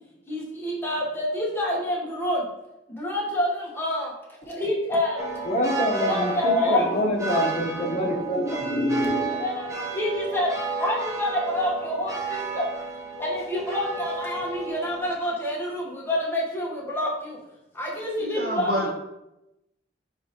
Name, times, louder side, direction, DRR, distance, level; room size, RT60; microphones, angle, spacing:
voice 1, 0.3-2.5 2.9-4.1 4.4-5.3 5.8-6.9 9.4-10.5 10.8-12.7 13.2-17.4 17.7-18.9, left 1 dB, 15° left, -3 dB, 1.2 m, -27 dB
sound 1, 5.2-15.1, right 4 dB, 15° right, 0.8 m, -32 dB
voice 2, 5.5-9.2, left 1 dB, 40° left, -2 dB, 1.0 m, -26 dB
voice 3, 18.2-18.9, equal, 55° right, 0 dB, 1.2 m, -27 dB
9.7 x 3.3 x 3.0 m, 0.91 s
head